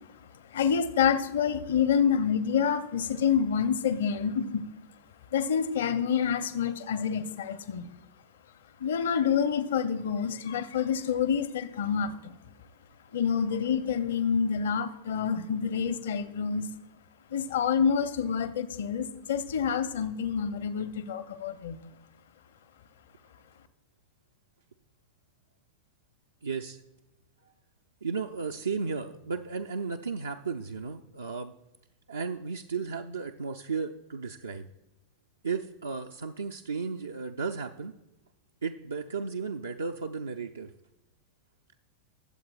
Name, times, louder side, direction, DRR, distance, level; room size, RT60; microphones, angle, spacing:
voice 1, 0.5-4.6 5.3-7.9 8.8-12.3 13.1-16.7 17.3-21.9, left 7 dB, 60° left, 12 dB, 0.7 m, -27 dB
voice 2, 26.4-26.8 28.0-31.5 32.1-34.7 35.4-37.9 38.6-40.7, right 5 dB, 75° right, 4 dB, 0.4 m, -34 dB
21.5 x 7.8 x 2.3 m, 0.98 s
figure-of-eight pair, 90°, 0 cm